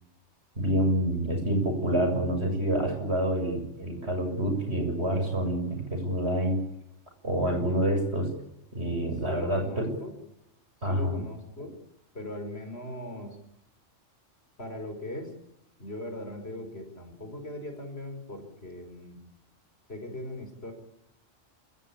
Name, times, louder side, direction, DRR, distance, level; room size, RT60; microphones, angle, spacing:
voice 1, 0.6-6.6 7.2-8.3 8.7-9.9 10.8-11.2, right 1 dB, 55° right, 4 dB, 7.5 m, -27 dB
voice 2, 9.3-10.2 10.9-11.7 12.1-13.4 14.6-15.3 15.8-19.2 19.9-20.7, left 1 dB, 50° left, 5 dB, 5.6 m, -39 dB
28.5 x 16.5 x 8.8 m, 0.83 s
omnidirectional pair, 1.3 m